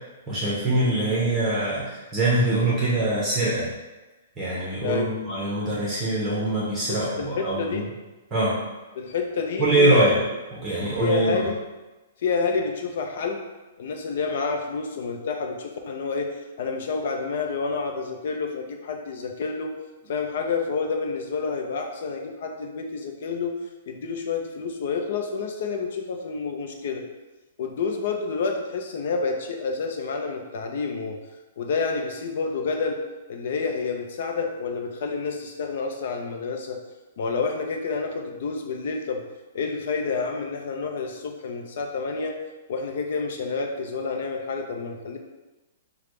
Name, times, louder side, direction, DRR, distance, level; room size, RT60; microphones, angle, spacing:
voice 1, 0.3-3.7 4.4-7.8 8.3-8.5 9.6-10.2 10.5-11.5, right 2 dB, 15° right, -7 dB, 1.2 m, -23 dB
voice 2, 6.9-7.9 8.9-10.1 11.0-11.6 12.2-13.4 13.8-19.7 20.1-23.5 23.9-27.0 27.6-31.2 31.6-36.8 37.2-39.2 39.5-42.4 42.7-45.2, left 4 dB, 60° left, 4 dB, 0.7 m, -29 dB
6.7 x 2.4 x 3.3 m, 1.1 s
hypercardioid pair, 150°, 0 cm